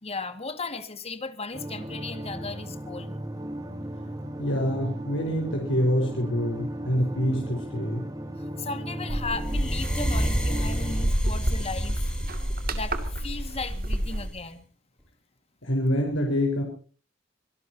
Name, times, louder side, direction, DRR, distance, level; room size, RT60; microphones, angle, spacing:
voice 1, 0.0-3.1 8.6-12.0 12.7-14.6, left 3 dB, 35° left, 10 dB, 2.0 m, -36 dB
sound 1, 1.5-11.1, right 1 dB, 20° right, 2.3 m, -36 dB
voice 2, 4.4-8.1 15.6-16.6, equal, 90° left, 1 dB, 4.5 m, -26 dB
sound 2, 9.1-14.3, right 1 dB, 50° right, 2.4 m, -29 dB
sound 3, 9.4-14.4, equal, 5° left, 7.3 m, -31 dB
26.0 x 17.5 x 2.8 m, 0.40 s
head